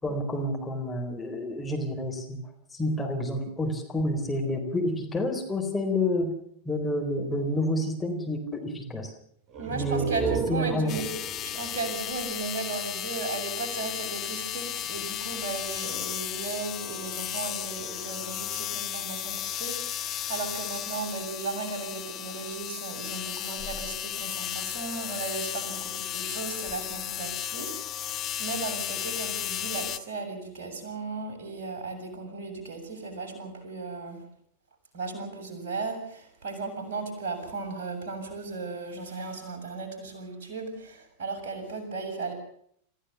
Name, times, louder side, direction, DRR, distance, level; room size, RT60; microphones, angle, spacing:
voice 1, 0.0-2.4 2.7-6.3 6.7-9.1 9.7-11.0, left 1 dB, 10° left, 1 dB, 4.2 m, -29 dB
sound 1, 9.5-13.0, right 5 dB, 30° right, 1.7 m, -35 dB
voice 2, 9.6-11.1 11.4-34.3 34.9-42.3, right 4 dB, 55° right, 3 dB, 7.3 m, -36 dB
sound 2, 10.9-30.0, left 11 dB, 35° left, 1.6 m, -34 dB
27.0 x 15.5 x 7.1 m, 0.67 s
figure-of-eight pair, 90°, 0 cm